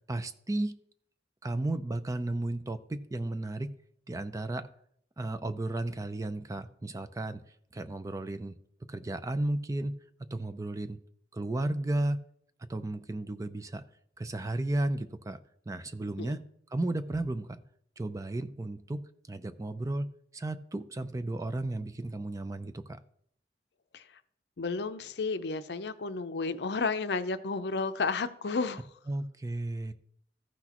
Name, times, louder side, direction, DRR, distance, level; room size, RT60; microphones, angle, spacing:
voice 1, 0.1-0.8 1.4-3.7 4.1-4.7 5.2-7.4 7.7-8.6 8.9-10.0 10.3-11.0 11.3-12.2 12.7-13.8 14.2-15.4 15.7-16.4 16.7-17.6 18.0-23.0 29.1-29.9, right 2 dB, 20° right, 11 dB, 0.4 m, -34 dB
voice 2, 24.6-28.9, left 4 dB, 70° left, 11 dB, 0.6 m, -32 dB
14.5 x 6.0 x 2.9 m, 0.68 s
head